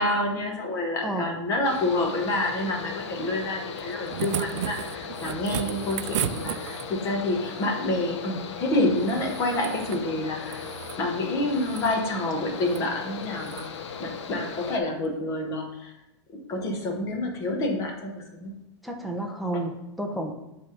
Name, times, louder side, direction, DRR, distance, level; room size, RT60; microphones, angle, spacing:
voice 1, 0.0-10.7 11.0-15.9 16.5-18.6, left 2 dB, 20° left, 1 dB, 1.1 m, -28 dB
Mechanical fan, 1.6-14.8, left 6 dB, 85° left, 0.8 m, -38 dB
sound 1, 3.8-7.1 9.0-10.1 10.4-11.0 11.5-12.0 12.6-12.9 13.4-13.7 15.1-15.2, right 11 dB, 85° right, 0.4 m, -34 dB
voice 2, 18.8-20.3, right 1 dB, ahead, 1 dB, 0.5 m, -31 dB
8.2 x 3.4 x 5.0 m, 0.90 s
supercardioid pair, 170°, 15 cm